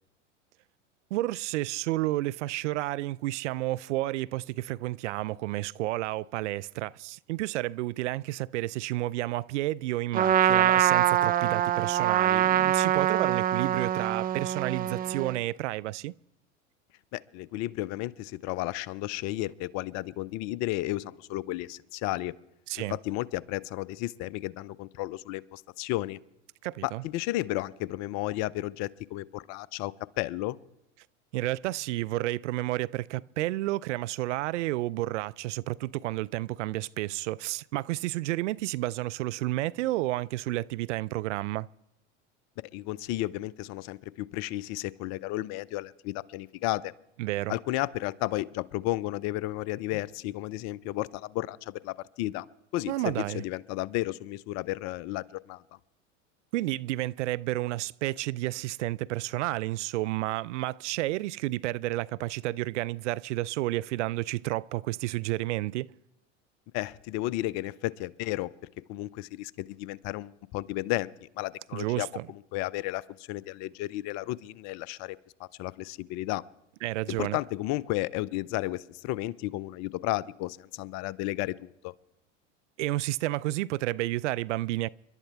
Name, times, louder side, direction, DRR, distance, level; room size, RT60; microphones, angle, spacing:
voice 1, 1.1-16.1 22.7-23.0 26.6-27.0 31.3-41.7 47.2-47.5 52.9-53.4 56.5-65.9 71.7-72.3 76.8-77.4 82.8-84.9, right 17 dB, 75° right, 0.5 m, -31 dB
Trumpet, 10.1-15.4, right 11 dB, 25° right, 0.5 m, -24 dB
voice 2, 17.1-22.3 22.8-26.2 26.8-30.6 42.7-46.9 47.5-52.5 52.7-55.6 66.7-68.5 68.9-76.4 77.1-81.9, left 16 dB, 50° left, 0.6 m, -33 dB
30.0 x 11.5 x 3.4 m
hypercardioid pair, 90°, 36 cm